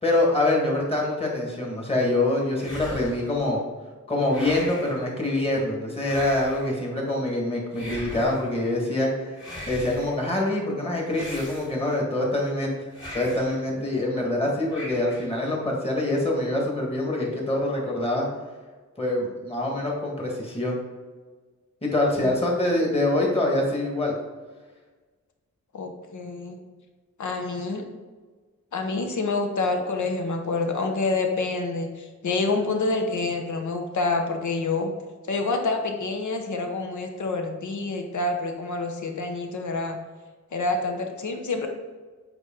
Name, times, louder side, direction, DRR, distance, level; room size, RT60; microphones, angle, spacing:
voice 1, 0.0-3.6 4.1-9.4 9.7-12.7 13.1-18.3 19.0-20.8 21.8-24.1, left 1 dB, 20° left, -2 dB, 1.6 m, -25 dB
sound 1, 2.6-3.4 4.3-5.0 6.0-6.8 7.7-8.5 9.4-10.2 11.1-12.0 12.9-13.6 14.7-15.4, left 1 dB, 40° left, 2.3 m, -39 dB
voice 2, 25.7-26.6 27.2-27.8 28.7-34.9 35.2-40.0 40.5-41.7, left 3 dB, 85° left, 4 dB, 1.1 m, -27 dB
8.2 x 4.6 x 3.7 m, 1.4 s
wide cardioid pair, 180°, 29 cm